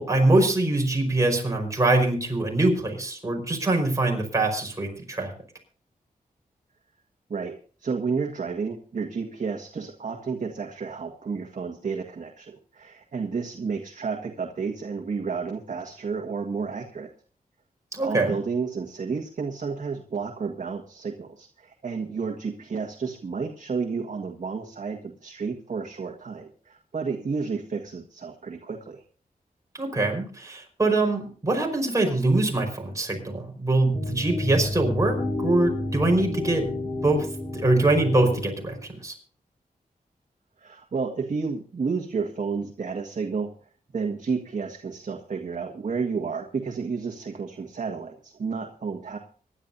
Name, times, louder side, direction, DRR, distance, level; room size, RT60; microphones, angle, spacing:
voice 1, 0.0-5.3 17.9-18.4 29.7-37.3 37.5-38.8 39.0-39.1, right 2 dB, 20° right, 2 dB, 5.1 m, -23 dB
voice 2, 7.3-17.1 18.0-29.0 40.6-43.5 43.9-49.2, right 5 dB, 55° right, 2 dB, 1.7 m, -31 dB
sound 1, 33.9-38.9, left 2 dB, 25° left, 4.0 m, -30 dB
25.5 x 11.5 x 2.7 m, 0.42 s
wide cardioid pair, 135°, 15 cm